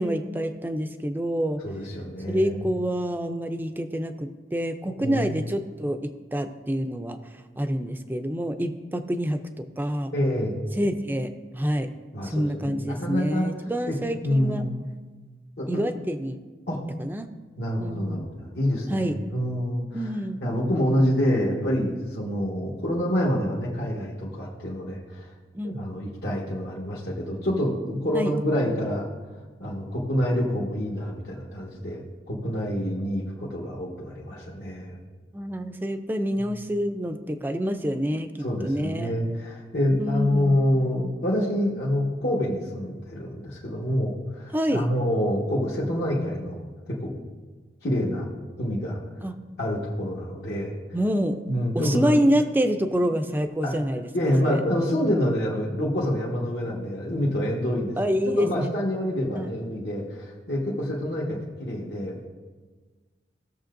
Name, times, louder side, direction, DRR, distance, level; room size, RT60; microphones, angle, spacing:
voice 1, 0.0-1.6 2.3-7.2 7.6-10.1 10.7-11.9 12.2-14.6 15.7-16.4 17.0-17.3 17.8-18.2 18.9-19.2 19.9-20.4 25.5-25.8 28.1-28.3 35.3-39.1 40.0-40.6 44.5-44.9 49.2-49.4 50.9-51.4 51.7-54.1 54.4-54.6 58.0-58.7 59.3-59.5, equal, 10° right, 8 dB, 0.4 m, -27 dB
voice 2, 1.6-2.6 4.9-5.3 10.1-10.7 12.1-13.5 13.9-14.0 14.2-14.8 15.6-15.8 16.7-16.8 17.6-20.0 20.4-25.3 25.6-29.1 29.6-35.0 36.4-36.5 38.4-46.6 46.9-47.1 47.8-48.3 48.6-49.0 49.6-50.7 51.5-52.2 53.6-53.8 54.1-62.3, equal, 70° left, -6 dB, 1.5 m, -27 dB
17.0 x 6.8 x 2.6 m, 1.4 s
head